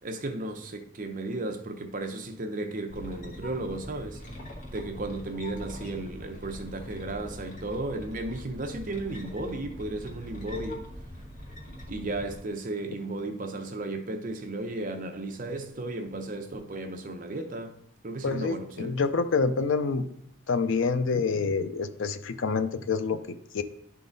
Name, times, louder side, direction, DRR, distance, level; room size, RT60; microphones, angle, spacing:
voice 1, 0.0-4.2 4.7-10.8 11.9-17.8 18.0-19.0, right 2 dB, 40° right, 0.7 m, -34 dB
sound 1, 2.9-12.4, equal, 35° left, 1.2 m, -42 dB
voice 2, 18.2-20.1 20.5-23.6, left 4 dB, 65° left, 0.5 m, -27 dB
10.5 x 3.8 x 3.9 m
head